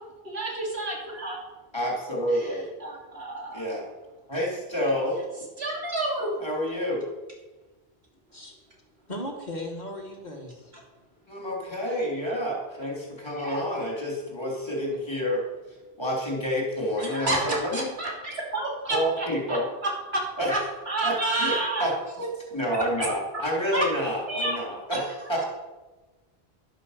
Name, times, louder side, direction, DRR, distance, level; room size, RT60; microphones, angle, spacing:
voice 1, 0.2-1.4 2.3-3.6 5.6-6.3 13.4-13.6 17.0-20.2 20.5-20.6 20.9-21.9 22.2-22.3 23.0-23.1 23.7-23.9 24.3-24.6 24.9-25.0, right 2 dB, 85° right, -3 dB, 3.5 m, -30 dB
voice 2, 1.7-2.6 3.5-3.8 4.3-5.2 6.4-7.0 11.3-15.4 16.0-17.9 18.9-19.7 20.4-20.5 21.0-21.9 22.5-25.4, equal, 25° left, -3 dB, 3.3 m, -29 dB
voice 3, 9.1-10.7, left 1 dB, 45° left, 2 dB, 2.0 m, -36 dB
11.5 x 9.7 x 6.6 m, 1.2 s
omnidirectional pair, 1.0 m